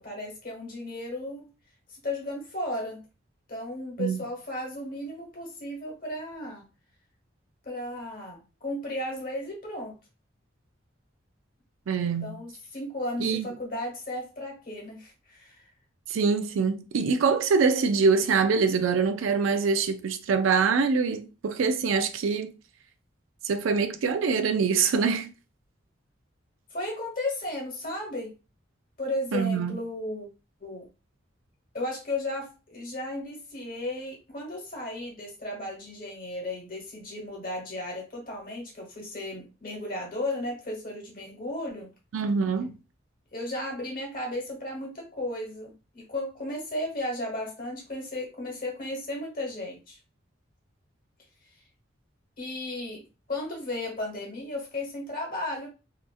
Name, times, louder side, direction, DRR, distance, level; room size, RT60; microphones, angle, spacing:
voice 1, 0.0-1.5 1.9-3.0 3.5-6.6 7.6-10.0 12.2-15.7 26.7-28.3 29.0-30.3 30.6-30.9 31.7-41.9 43.3-50.0 52.4-55.7, left 1 dB, 45° left, 1.2 m, -35 dB
voice 2, 11.9-12.4 13.2-13.5 16.1-22.5 23.4-25.3 29.3-29.8 42.1-42.7, right 5 dB, 85° right, 0.4 m, -24 dB
2.8 x 2.5 x 2.3 m
head